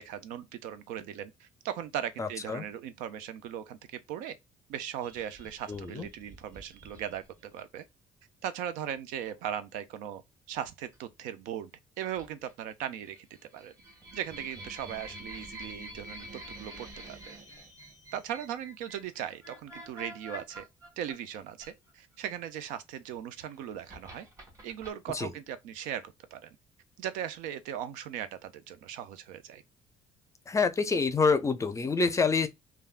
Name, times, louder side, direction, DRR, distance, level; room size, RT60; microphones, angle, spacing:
voice 1, 0.0-4.4 4.7-7.8 8.4-10.2 10.5-11.7 12.0-13.3 13.5-13.7 14.1-16.2 16.6-17.3 18.1-20.6 21.0-24.3 24.6-26.5 27.0-29.6, right 10 dB, 90° right, 0.5 m, -38 dB
voice 2, 2.2-2.6 5.7-6.1 25.1-25.3 30.5-32.5, left 4 dB, 25° left, 0.5 m, -27 dB
sound 1, 5.0-7.6 9.2-9.5 10.7-10.9 12.2-12.7 13.0-22.1 23.2-24.9, right 1 dB, 25° right, 1.6 m, -48 dB
3.4 x 2.3 x 2.3 m
cardioid pair, 100°, 13 cm